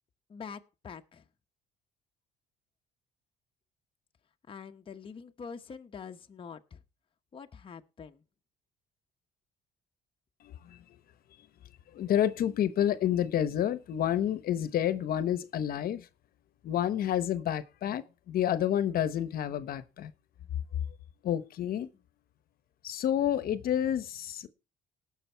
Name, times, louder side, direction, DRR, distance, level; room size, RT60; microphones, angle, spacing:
voice 1, 0.3-1.2 4.5-6.8 7.3-8.2, left 6 dB, 30° left, 0.9 m, -45 dB
voice 2, 10.4-11.0 11.9-16.1 16.6-20.1 21.2-21.9 22.8-24.5, left 10 dB, 60° left, 1.0 m, -29 dB
18.5 x 6.5 x 4.5 m
cardioid pair, 110°, 17 cm